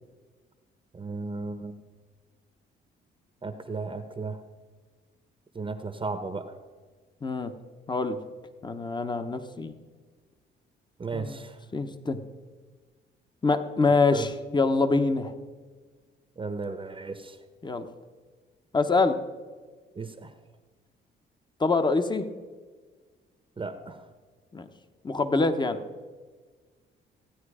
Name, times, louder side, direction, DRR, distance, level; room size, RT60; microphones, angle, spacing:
voice 1, 0.9-1.8 3.4-4.4 5.5-6.5 11.0-11.6 14.1-14.3 16.4-17.4 20.0-20.3 23.6-24.0, right 4 dB, 25° right, 8 dB, 0.9 m, -34 dB
voice 2, 7.2-7.5 7.9-8.2 8.6-9.7 11.1-11.4 11.7-12.2 13.4-15.3 17.6-17.9 18.7-19.2 21.6-22.3 24.5-24.6 25.0-25.8, left 3 dB, 20° left, 9 dB, 1.0 m, -25 dB
16.0 x 9.4 x 4.9 m, 1.5 s
cardioid pair, 90°, 20 cm